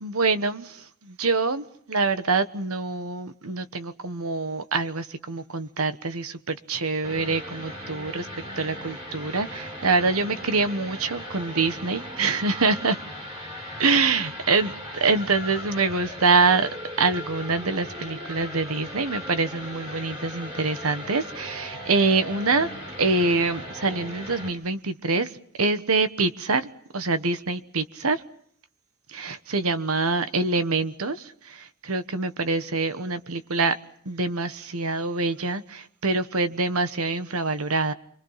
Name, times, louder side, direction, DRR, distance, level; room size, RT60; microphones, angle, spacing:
voice 1, 0.0-8.3 8.6-13.0 13.8-14.7 15.0-16.7 17.0-22.7 23.0-25.3 25.6-28.2 29.1-33.8 34.0-37.9, right 3 dB, 70° right, 1.3 m, -25 dB
sound 1, 7.0-24.5, equal, 20° right, 5.8 m, -38 dB
29.0 x 24.0 x 5.8 m
head